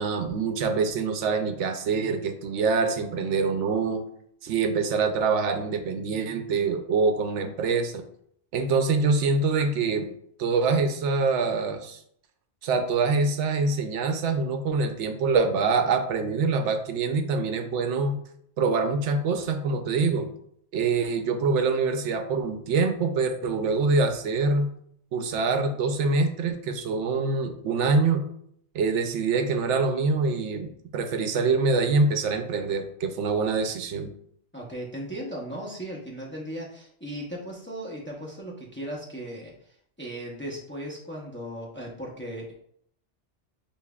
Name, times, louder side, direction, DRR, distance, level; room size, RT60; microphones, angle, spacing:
voice 1, 0.0-4.0 4.4-8.0 8.5-10.1 10.4-12.0 12.6-18.2 18.6-20.3 20.7-24.7 25.1-28.2 28.7-34.1, right 4 dB, 80° right, 6 dB, 0.9 m, -25 dB
voice 2, 34.5-42.5, equal, 10° left, -4 dB, 0.6 m, -37 dB
6.8 x 2.6 x 2.3 m, 0.68 s
omnidirectional pair, 1.2 m